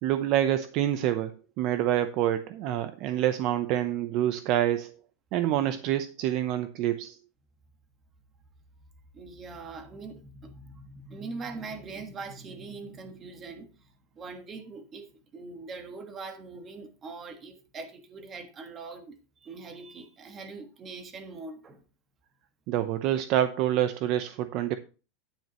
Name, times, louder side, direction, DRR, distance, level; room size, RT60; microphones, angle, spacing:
voice 1, 0.0-4.9 5.3-7.2 22.7-24.8, right 12 dB, 45° right, 0.7 m, -27 dB
voice 2, 9.1-13.8 14.1-21.8, right 4 dB, 25° right, 1.4 m, -42 dB
10.0 x 9.1 x 3.0 m
supercardioid pair, 150°, 0 cm